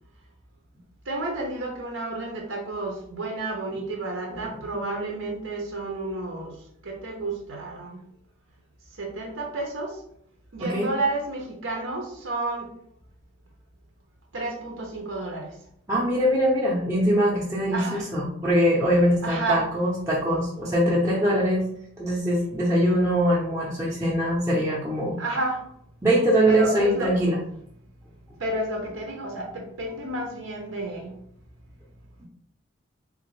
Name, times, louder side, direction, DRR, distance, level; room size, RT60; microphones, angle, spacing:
voice 1, 1.1-6.5 6.8-8.0 9.0-10.0 10.5-12.7 14.3-15.5 17.7-18.1 19.2-19.7 25.2-25.6 26.5-27.2 28.4-31.1, right 2 dB, 85° right, 1 dB, 0.7 m, -31 dB
voice 2, 10.6-10.9 15.9-21.6 22.0-25.2 26.0-27.4 32.2-32.3, equal, 15° right, -7 dB, 0.5 m, -22 dB
3.6 x 2.5 x 3.1 m, 0.68 s
head